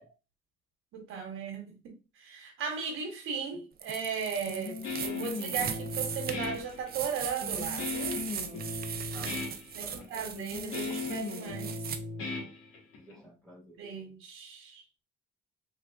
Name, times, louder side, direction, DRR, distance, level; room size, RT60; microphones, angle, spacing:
voice 1, 0.9-8.2 9.7-11.9 13.8-14.8, right 6 dB, 75° right, 1.1 m, -37 dB
sound 1, 3.8-12.0, right 7 dB, 45° right, 0.5 m, -38 dB
Guitar, 4.5-13.1, left 3 dB, 80° left, 1.2 m, -37 dB
voice 2, 9.1-10.5 10.8-11.0 13.0-13.8, right 1 dB, ahead, 1.9 m, -52 dB
3.3 x 3.2 x 2.4 m
cardioid pair, 105°, 21 cm